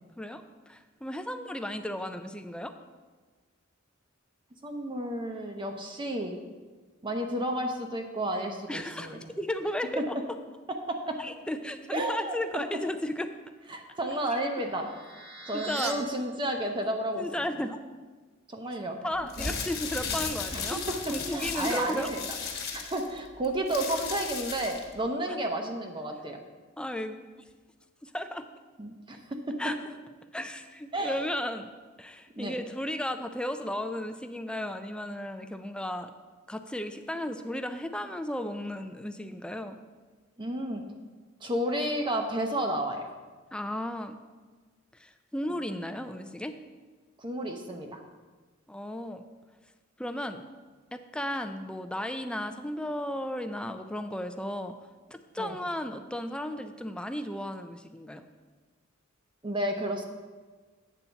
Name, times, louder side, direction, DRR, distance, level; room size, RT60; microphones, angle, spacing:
voice 1, 0.2-2.7 8.7-10.1 11.2-13.3 15.5-16.1 17.2-17.8 19.0-20.8 21.1-22.1 26.8-27.2 28.0-28.5 29.6-29.7 30.3-31.7 32.0-36.1 36.5-39.8 43.5-44.2 44.9-46.6 48.7-49.2 50.0-50.5 50.9-54.7 55.1-58.3, left 1 dB, 5° left, 8 dB, 0.3 m, -34 dB
voice 2, 4.6-6.4 7.0-9.2 10.0-10.1 10.9-11.2 11.9-12.3 13.7-17.4 18.5-19.0 19.4-19.5 20.5-21.0 21.3-22.2 22.5-26.4 28.8-29.5 30.9-31.3 32.4-32.5 40.4-40.8 41.4-43.1 47.2-48.0 55.4-55.6 59.4-60.0, right 1 dB, 25° right, 3 dB, 0.7 m, -32 dB
sound 1, 13.7-15.9, right 4 dB, 55° right, 0.8 m, -42 dB
sound 2, 19.2-24.9, left 5 dB, 50° left, 1.2 m, -35 dB
8.4 x 4.1 x 6.9 m, 1.4 s
head